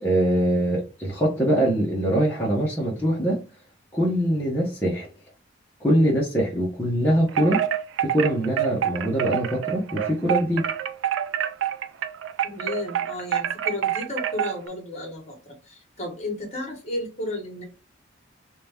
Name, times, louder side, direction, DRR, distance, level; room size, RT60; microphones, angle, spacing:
voice 1, 0.0-3.4 3.9-5.1 5.8-7.6 8.0-10.7, right 1 dB, 10° left, 1.0 m, -23 dB
Wind chime, 7.3-14.7, right 10 dB, 70° right, 0.4 m, -27 dB
voice 2, 12.4-17.6, left 2 dB, 35° left, 1.4 m, -33 dB
3.4 x 2.9 x 3.5 m
head